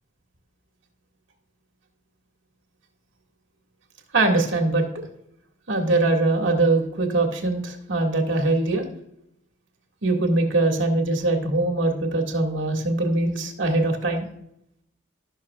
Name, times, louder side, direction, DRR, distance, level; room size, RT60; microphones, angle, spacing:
voice 1, 4.1-5.0 5.7-8.9 10.0-14.3, right 2 dB, 85° right, 2 dB, 2.0 m, -22 dB
17.5 x 6.3 x 2.4 m, 0.78 s
head